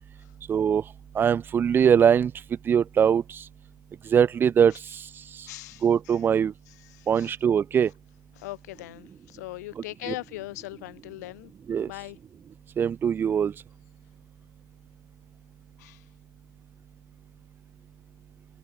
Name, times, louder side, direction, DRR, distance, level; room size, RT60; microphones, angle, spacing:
voice 1, 0.5-0.8 1.2-2.3 2.7-3.2 4.1-4.7 5.8-6.5 7.1-7.9 11.7-11.9 12.8-13.5, right 8 dB, 20° right, 0.3 m, -21 dB
voice 2, 5.5-6.2 6.7-7.4 8.4-12.2 15.8-16.1, left 18 dB, 65° left, 5.6 m, -40 dB
figure-of-eight pair, 85°, 10 cm